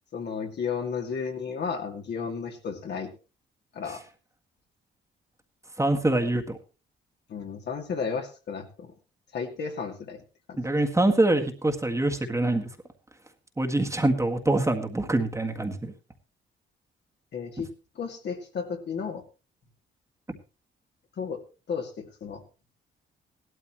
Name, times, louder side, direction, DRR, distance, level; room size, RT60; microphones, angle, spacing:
voice 1, 0.1-3.1 3.7-4.0 7.3-8.9 9.3-10.2 10.5-10.6 17.3-17.7 18.0-19.2 21.2-21.4 21.7-22.4, left 6 dB, 60° left, 3 dB, 2.5 m, -33 dB
voice 2, 5.8-6.6 10.6-12.7 13.6-15.9, right 2 dB, 15° right, 4 dB, 1.8 m, -24 dB
16.5 x 12.5 x 3.1 m, 0.31 s
cardioid pair, 90°, 20 cm